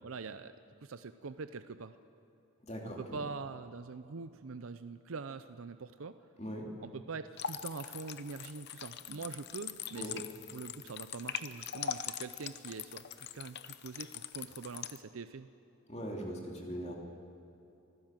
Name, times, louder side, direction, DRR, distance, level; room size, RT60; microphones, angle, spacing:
voice 1, 0.0-2.0 2.8-6.2 6.8-10.2 10.5-15.5, right 4 dB, 70° right, 11 dB, 0.6 m, -44 dB
voice 2, 2.6-3.2 6.4-6.7 10.0-10.1 15.9-16.9, equal, 30° left, 0 dB, 3.0 m, -40 dB
sound 1, 7.4-15.0, left 9 dB, 50° left, 0.7 m, -42 dB
24.0 x 15.5 x 7.6 m, 2.9 s
head